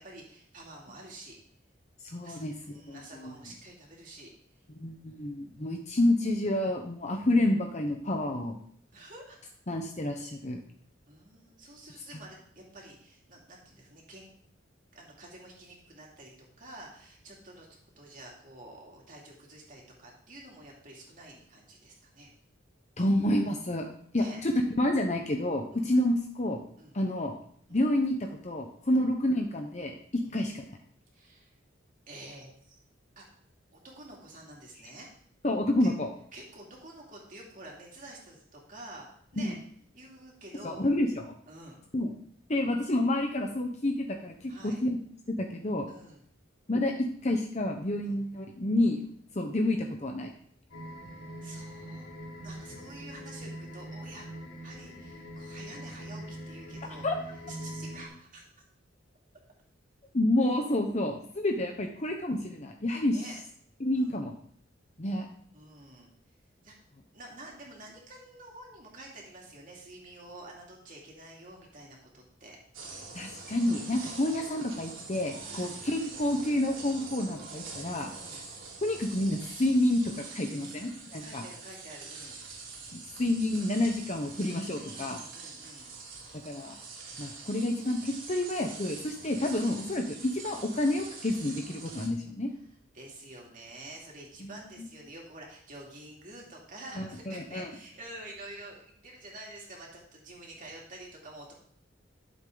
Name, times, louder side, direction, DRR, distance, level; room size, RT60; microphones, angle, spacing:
voice 1, 0.0-1.4 2.2-4.3 8.9-9.5 11.1-14.3 14.9-17.7 18.0-22.3 24.1-24.4 25.7-25.9 26.8-26.9 27.7-27.8 28.9-29.1 30.2-30.4 31.1-31.5 32.1-32.7 33.2-33.3 33.7-35.1 35.8-35.9 36.3-39.6 39.9-40.9 41.5-41.8 44.5-44.8 45.9-46.2 48.0-48.1 51.4-52.1 52.4-54.3 54.6-57.1 57.5-58.5 63.1-63.4 64.0-64.2 65.5-66.1 66.6-66.7 67.1-72.6 74.0-74.4 75.4-75.9 78.1-78.4 80.5-80.8 81.2-82.4 84.8-85.9 89.2-89.4 92.9-101.5, right 1 dB, 40° right, -2 dB, 3.0 m, -48 dB
voice 2, 2.0-3.3 4.7-8.6 9.7-10.6 12.1-12.2 23.0-23.9 24.1-26.6 26.9-27.3 27.7-28.2 28.4-29.9 30.3-30.6 35.4-36.1 39.4-39.5 40.6-41.3 41.9-42.1 42.5-45.0 45.3-45.9 46.7-49.0 49.3-50.3 57.0-57.2 60.1-63.3 63.8-64.3 65.0-65.3 73.1-78.1 78.8-81.4 82.9-85.2 86.4-86.8 87.2-92.5 94.4-94.9 97.0-97.7, left 1 dB, 35° left, 3 dB, 0.9 m, -29 dB
sound 1, 50.7-58.1, equal, 85° left, 4.3 m, -43 dB
sound 2, 72.7-92.1, right 4 dB, 90° right, 3.0 m, -44 dB
12.5 x 7.6 x 4.0 m, 0.62 s
head